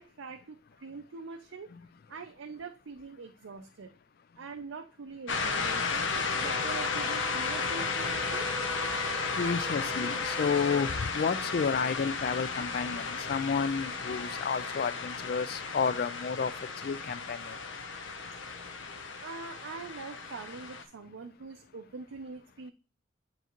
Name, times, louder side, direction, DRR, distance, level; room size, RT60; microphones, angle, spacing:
voice 1, 0.0-1.7 2.1-3.9 4.4-8.5 19.2-22.7, right 4 dB, 80° right, 4 dB, 0.5 m, -43 dB
sound 1, 5.3-20.8, left 4 dB, 75° left, 0.7 m, -34 dB
Wind instrument woodwind instrument, 6.3-11.0, right 1 dB, 5° left, 0.7 m, -43 dB
voice 2, 9.4-16.5 16.8-17.6, left 5 dB, 50° left, 15 dB, 0.3 m, -31 dB
8.0 x 4.7 x 3.0 m, 0.35 s
head